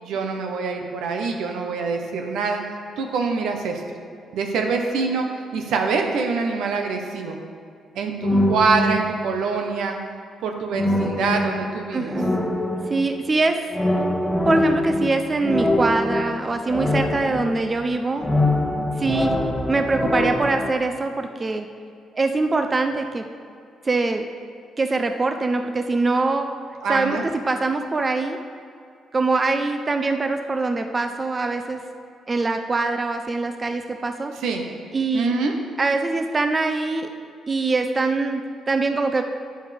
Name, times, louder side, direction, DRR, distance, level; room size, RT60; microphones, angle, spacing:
voice 1, 0.0-2.6 3.0-3.8 4.3-5.2 5.5-7.4 7.9-10.0 10.4-12.2 26.8-27.2 34.4-34.6 35.1-35.5, right 4 dB, 80° right, 3 dB, 1.1 m, -25 dB
sound 1, 8.2-9.4 10.7-13.2 13.7-17.9 18.2-20.7, left 1 dB, 5° left, 1.2 m, -23 dB
voice 2, 11.9-12.4 12.9-13.6 14.5-18.2 19.0-19.3 19.7-21.7 22.1-23.3 23.8-24.3 24.8-26.5 26.9-28.4 29.1-31.8 32.3-34.3 34.9-35.3 35.8-37.1 37.5-39.2, right 3 dB, 30° right, 6 dB, 0.6 m, -23 dB
11.0 x 9.0 x 3.5 m, 2.4 s
cardioid pair, 90°, 0 cm